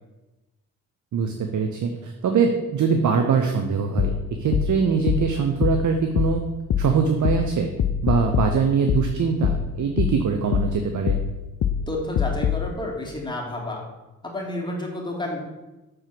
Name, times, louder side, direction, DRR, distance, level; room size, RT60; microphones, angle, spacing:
voice 1, 1.1-4.1 4.4-6.4 6.8-7.7 8.0-11.2, right 6 dB, 50° right, 4 dB, 0.9 m, -22 dB
sound 1, 4.0-12.7, left 8 dB, 40° left, 0.6 m, -25 dB
voice 2, 11.9-13.8 14.2-15.4, left 1 dB, 10° left, -2 dB, 2.7 m, -30 dB
6.7 x 4.5 x 6.0 m, 1.1 s
hypercardioid pair, 50°, 38 cm